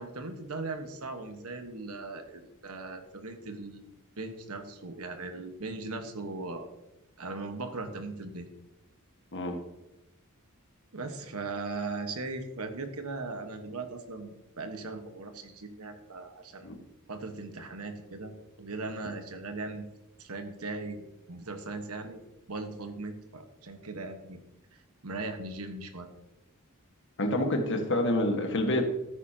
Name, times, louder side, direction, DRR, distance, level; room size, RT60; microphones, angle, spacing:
voice 1, 0.0-6.7 7.2-8.5 10.9-16.8 17.1-19.8 20.2-22.2 22.5-24.4 25.0-26.1, right 3 dB, 85° right, 7 dB, 1.4 m, -39 dB
voice 2, 27.2-28.8, left 1 dB, 55° left, 4 dB, 1.6 m, -27 dB
13.5 x 10.0 x 2.9 m, 0.93 s
head